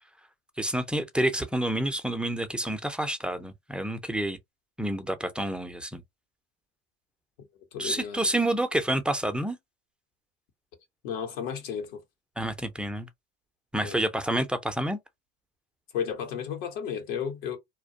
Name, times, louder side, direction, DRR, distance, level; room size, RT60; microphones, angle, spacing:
voice 1, 0.6-4.4 4.8-6.0 7.8-9.6 12.4-13.1 13.7-15.0, right 1 dB, 5° right, 0.4 m, -28 dB
voice 2, 7.7-8.3 11.0-12.0 13.8-14.0 15.9-17.6, left 7 dB, 75° left, 0.9 m, -33 dB
2.2 x 2.1 x 2.6 m
hypercardioid pair, 80°, 31 cm